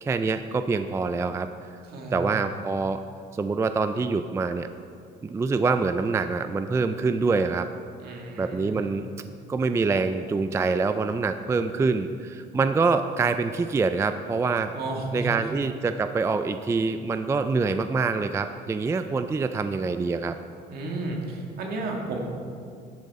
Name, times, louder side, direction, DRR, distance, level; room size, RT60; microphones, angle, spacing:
voice 1, 0.0-1.5 2.1-3.0 3.3-4.7 5.2-7.7 8.4-9.1 9.5-14.7 15.1-20.3, right 4 dB, 15° right, 9 dB, 0.3 m, -25 dB
voice 2, 1.8-2.2 8.0-8.9 14.7-15.5 19.0-19.2 20.7-22.2, right 2 dB, 65° right, 0 dB, 2.0 m, -33 dB
10.5 x 8.4 x 4.2 m, 2.3 s
cardioid pair, 110°, 17 cm